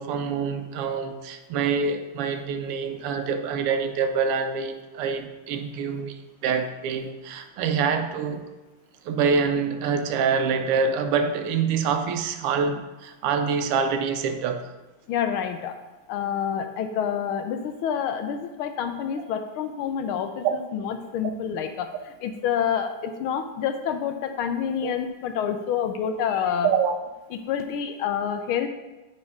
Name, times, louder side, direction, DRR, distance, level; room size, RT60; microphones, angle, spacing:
voice 1, 0.0-8.4 9.0-14.7 19.2-19.3 20.4-20.5 24.8-24.9 26.6-27.0, right 5 dB, 90° right, 7 dB, 1.6 m, -26 dB
voice 2, 15.1-15.8 16.1-21.9 22.2-26.7 27.3-28.7, left 8 dB, 75° left, 7 dB, 1.4 m, -28 dB
7.4 x 4.5 x 4.6 m, 1.1 s
omnidirectional pair, 2.4 m